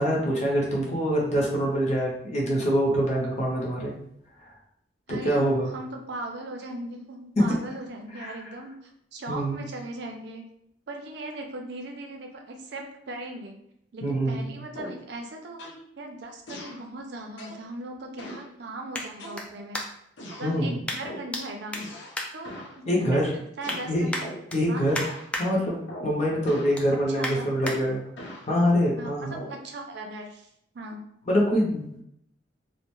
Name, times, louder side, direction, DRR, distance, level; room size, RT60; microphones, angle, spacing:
voice 1, 0.0-3.9 4.4-4.5 5.1-5.7 7.4-7.5 8.2-8.3 9.3-9.6 14.0-14.5 20.4-20.8 22.9-23.3 23.9-24.1 24.5-25.0 25.4-28.0 28.5-29.3 31.3-31.9, equal, 40° left, -2 dB, 0.7 m, -24 dB
voice 2, 5.1-10.4 10.9-13.5 13.9-15.6 16.0-19.8 20.4-21.9 22.3-24.2 24.7-24.9 27.1-27.5 29.0-30.5 30.7-31.0, right 2 dB, 65° right, 3 dB, 0.5 m, -38 dB
sound 1, 14.7-15.1 15.6-15.9 16.5-16.8 17.4-17.7 18.2-18.5 19.2-19.7 20.2-20.6 21.0-21.3 21.7-22.2 22.4-22.8 23.6-24.5 24.9-25.3 25.9-26.2 26.5-26.8 27.6-28.5 29.3-29.6, equal, 75° left, 0.5 m, -41 dB
sound 2, 16.1-20.2 20.8-21.4 21.7-23.0 23.4-23.8 24.1-25.4 25.9-26.1 26.5-27.8 28.3-28.4, left 1 dB, 5° left, 0.3 m, -35 dB
2.4 x 2.1 x 3.0 m, 0.75 s
head